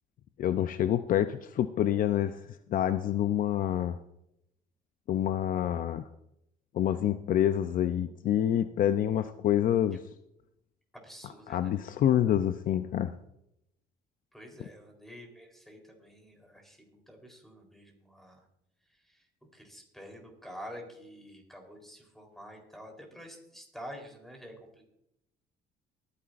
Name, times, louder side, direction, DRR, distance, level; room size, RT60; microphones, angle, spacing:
voice 1, 0.4-2.4 2.7-4.0 5.1-6.0 6.7-10.0 11.2-13.1, left 11 dB, 55° left, 11 dB, 0.6 m, -27 dB
voice 2, 10.9-11.7 14.3-18.4 19.5-24.9, equal, ahead, 2 dB, 3.7 m, -48 dB
23.5 x 9.9 x 2.5 m, 0.80 s
cardioid pair, 110°, 17 cm